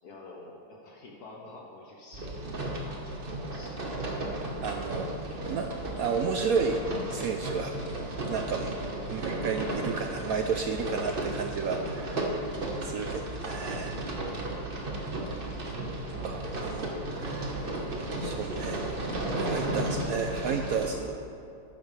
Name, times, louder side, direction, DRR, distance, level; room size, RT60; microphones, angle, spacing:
voice 1, 0.0-3.8 9.1-9.4 15.6-15.8, left 2 dB, 65° left, -1 dB, 1.5 m, -49 dB
sound 1, 2.1-20.9, right 1 dB, 35° right, 1.2 m, -34 dB
voice 2, 4.6-6.8 7.1-7.7 8.2-8.8 9.1-12.3 12.8-14.0 15.9-17.5 18.2-18.9 19.4-21.2, right 5 dB, 70° right, 4 dB, 0.8 m, -32 dB
12.0 x 10.0 x 3.3 m, 2.5 s
omnidirectional pair, 1.9 m